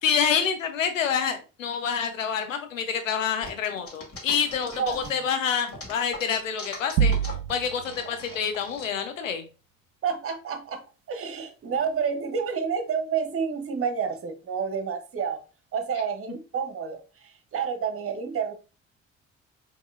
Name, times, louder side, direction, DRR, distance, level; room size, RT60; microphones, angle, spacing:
voice 1, 0.0-9.5, left 7 dB, 85° left, 8 dB, 0.6 m, -27 dB
sound 1, 3.4-5.3 5.7-8.8, left 2 dB, 35° left, 2.1 m, -40 dB
sound 2, 7.0-7.9, right 7 dB, 65° right, 0.5 m, -24 dB
voice 2, 10.0-10.8 11.1-15.4 15.7-18.5, right 6 dB, 35° right, 7 dB, 0.9 m, -29 dB
4.6 x 2.7 x 2.6 m, 0.34 s
figure-of-eight pair, 45°, 38 cm